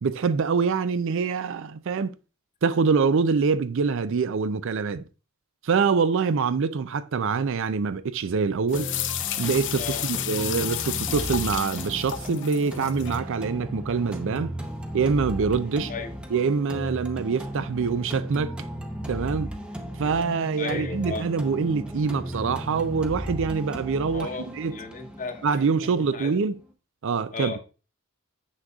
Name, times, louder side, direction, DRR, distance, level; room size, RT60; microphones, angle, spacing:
voice 1, 0.0-2.1 2.6-5.0 5.6-8.9 9.4-14.5 14.9-15.9 16.3-18.6 19.1-19.5 20.0-24.3 24.5-24.8 25.4-26.6 27.0-27.5, right 5 dB, 65° right, 0.5 m, -25 dB
sound 1, 8.7-13.2, left 11 dB, 60° left, 0.5 m, -32 dB
sound 2, 8.7-26.7, equal, 5° right, 0.7 m, -36 dB
voice 2, 20.6-21.3 24.1-26.4 27.3-27.6, left 4 dB, 40° left, 0.8 m, -35 dB
7.5 x 6.3 x 2.4 m
head